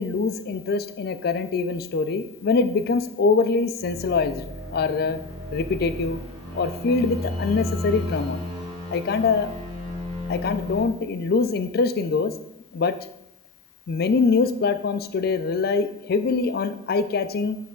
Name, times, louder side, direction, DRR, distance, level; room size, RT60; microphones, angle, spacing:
voice 1, 0.0-4.4 4.7-5.2 5.5-6.2 6.5-8.4 8.9-9.5 10.3-12.3 12.7-12.9 13.9-17.6, left 4 dB, 55° left, 11 dB, 0.4 m, -23 dB
sound 1, 3.8-10.8, left 1 dB, 25° right, 1.3 m, -33 dB
7.4 x 3.4 x 3.8 m, 0.80 s
head